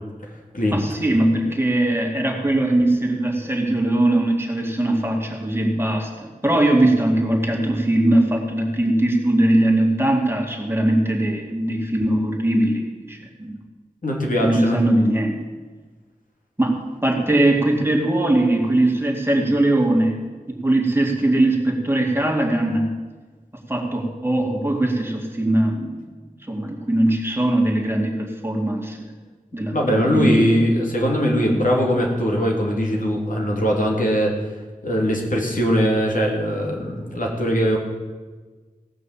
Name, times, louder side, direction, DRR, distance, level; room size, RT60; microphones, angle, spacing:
voice 1, 0.7-13.6 14.4-15.4 16.6-16.8 17.0-20.2 20.5-22.9 23.7-26.0 26.5-29.0 29.5-30.4, right 1 dB, 15° right, 0 dB, 2.4 m, -20 dB
voice 2, 14.0-14.8 29.6-34.3 34.8-37.8, equal, 65° left, -1 dB, 2.6 m, -21 dB
17.0 x 6.1 x 7.5 m, 1.4 s
wide cardioid pair, 65°, 15 cm